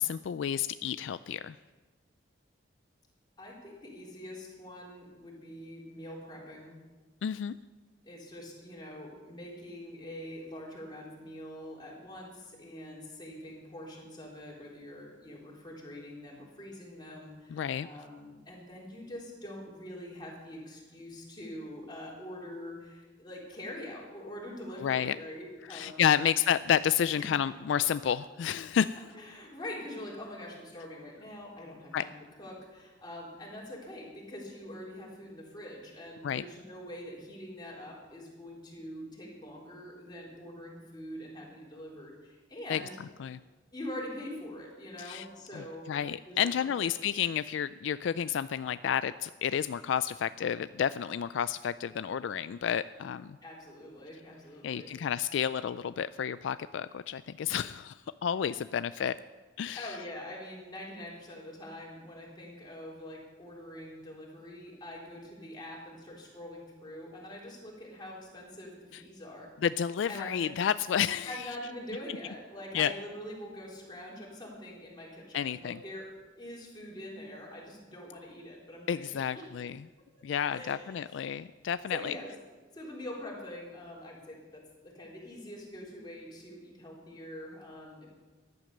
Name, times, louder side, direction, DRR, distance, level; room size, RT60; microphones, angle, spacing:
voice 1, 0.0-1.6 7.2-7.6 17.5-17.9 24.8-25.2 25.7-29.1 31.9-32.0 36.2-36.4 42.7-42.8 43.2-43.4 45.0-45.3 45.5-45.6 45.9-53.4 54.6-59.2 59.6-60.0 69.6-71.5 72.7-72.9 75.3-75.8 78.9-79.8 80.2-82.1, left 8 dB, 70° left, 14 dB, 0.3 m, -30 dB
voice 2, 3.4-6.8 8.0-26.2 27.2-27.3 29.1-43.0 43.7-45.9 46.3-46.5 46.8-46.9 53.4-54.9 59.8-69.5 70.1-70.5 71.3-76.1 76.4-79.5 80.5-81.0 81.9-82.3 82.7-88.1, left 1 dB, 25° left, -3 dB, 3.8 m, -44 dB
14.0 x 11.0 x 6.6 m, 1.3 s
head